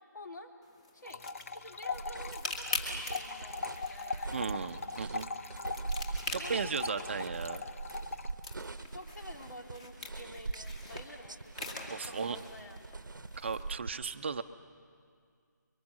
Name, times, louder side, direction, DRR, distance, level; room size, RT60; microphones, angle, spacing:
voice 1, 0.1-0.5 0.9-1.3 1.5-4.6 6.3-7.2 8.9-12.9, left 1 dB, 70° left, 3 dB, 2.9 m, -49 dB
sound 1, 0.6-13.6, left 2 dB, 20° left, 2.1 m, -44 dB
sound 2, 1.0-8.3, left 4 dB, 45° left, 0.8 m, -41 dB
sound 3, 1.9-13.9, right 3 dB, 85° right, 0.9 m, -43 dB
voice 2, 4.3-5.3 6.3-7.6 11.9-12.4 13.4-14.4, right 5 dB, 35° right, 10 dB, 0.7 m, -36 dB
24.5 x 23.5 x 7.4 m, 2.1 s
figure-of-eight pair, 165°, 10 cm